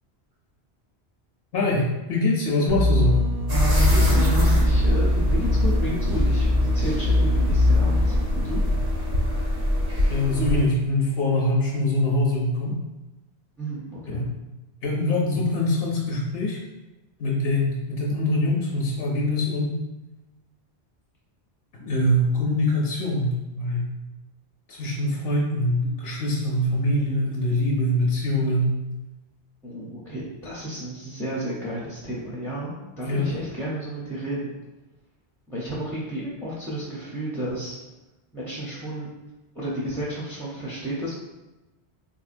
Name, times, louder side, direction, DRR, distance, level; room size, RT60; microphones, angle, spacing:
voice 1, 1.5-3.2 10.1-12.8 14.1-14.3 14.8-16.6 17.2-19.8 21.7-23.3 23.6-23.9 24.7-28.7 33.0-33.3, left 1 dB, 70° left, -3 dB, 0.8 m, -23 dB
sound 1, 2.7-8.2, left 1 dB, 45° right, 0.5 m, -21 dB
sound 2, 3.5-10.6, equal, 70° right, 1.3 m, -24 dB
voice 2, 3.9-8.6 13.6-14.2 29.6-34.6 35.5-37.8 38.3-39.1 39.5-41.2, equal, 5° left, -6 dB, 0.4 m, -32 dB
3.7 x 2.7 x 2.5 m, 1.0 s
omnidirectional pair, 1.1 m